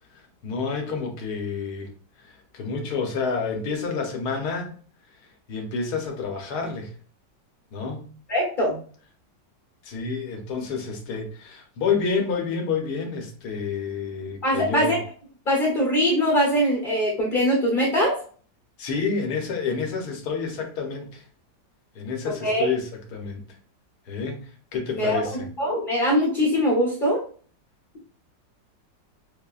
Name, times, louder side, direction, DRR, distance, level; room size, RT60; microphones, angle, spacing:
voice 1, 0.1-1.9 2.2-4.7 5.5-6.9 7.7-8.0 9.8-15.0 18.8-21.2 21.9-23.4 24.1-25.5, left 5 dB, 65° left, 2 dB, 1.3 m, -29 dB
voice 2, 8.3-8.7 14.4-15.0 15.5-18.2 22.4-22.7 25.0-27.2, equal, 35° left, -2 dB, 0.9 m, -22 dB
5.5 x 2.1 x 2.3 m, 0.43 s
omnidirectional pair, 1.9 m